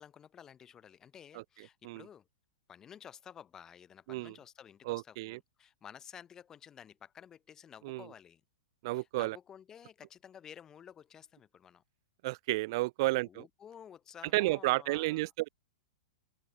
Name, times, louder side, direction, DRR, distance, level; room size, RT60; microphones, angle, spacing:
voice 1, 0.0-2.3 2.7-8.4 8.9-11.8 13.0-15.2, left 8 dB, 15° left, 3.0 m, -53 dB
voice 2, 4.9-5.4 7.8-8.1 8.8-9.4 12.2-13.4 14.3-15.5, right 21 dB, 45° right, 0.5 m, -32 dB
hypercardioid pair, 160°, 3 cm